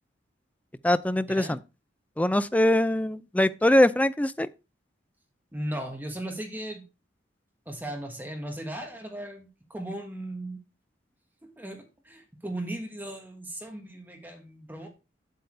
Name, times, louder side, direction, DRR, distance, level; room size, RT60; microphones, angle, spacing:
voice 1, 0.8-1.6 2.2-4.5, left 1 dB, 10° left, 0.4 m, -22 dB
voice 2, 5.5-6.8 7.7-10.6 11.4-14.9, right 1 dB, 10° right, 1.4 m, -37 dB
8.2 x 7.9 x 3.3 m
head